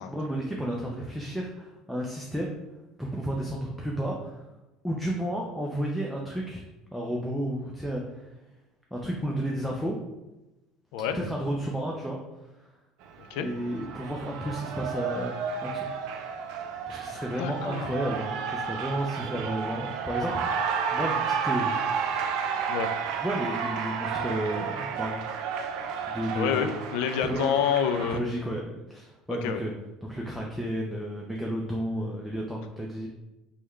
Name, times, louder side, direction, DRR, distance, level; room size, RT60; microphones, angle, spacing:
voice 1, 0.1-2.5 3.0-4.5 4.8-6.7 6.9-8.3 8.9-10.0 11.1-12.2 12.6-12.7 13.4-15.4 15.6-16.6 16.9-21.8 22.1-22.4 23.2-25.4 26.1-26.7 27.2-27.5 28.1-29.7 30.0-33.1, right 1 dB, ahead, -2 dB, 0.4 m, -32 dB
Cheering, 13.0-28.2, right 6 dB, 70° right, 0.3 m, -32 dB
voice 2, 17.4-17.9 22.7-22.9 26.4-28.2 29.4-29.6, left 8 dB, 75° left, 8 dB, 0.3 m, -27 dB
3.4 x 2.3 x 3.1 m, 1.0 s
supercardioid pair, 115°, 0 cm